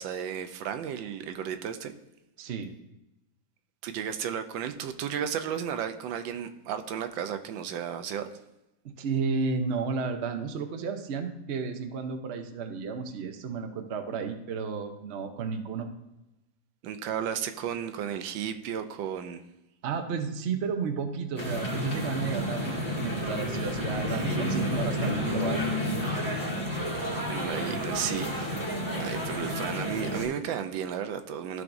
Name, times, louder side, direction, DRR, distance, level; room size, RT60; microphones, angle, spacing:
voice 1, 0.0-1.9 3.8-8.3 16.8-19.4 24.1-24.8 27.3-28.7 29.0-31.6, right 8 dB, 90° right, 8 dB, 1.4 m, -33 dB
voice 2, 2.4-2.7 8.8-15.9 19.8-25.6, right 5 dB, 60° right, 6 dB, 0.7 m, -32 dB
sound 1, 21.4-30.3, left 1 dB, 10° left, 1.7 m, -30 dB
13.5 x 4.7 x 2.6 m, 0.94 s
omnidirectional pair, 2.0 m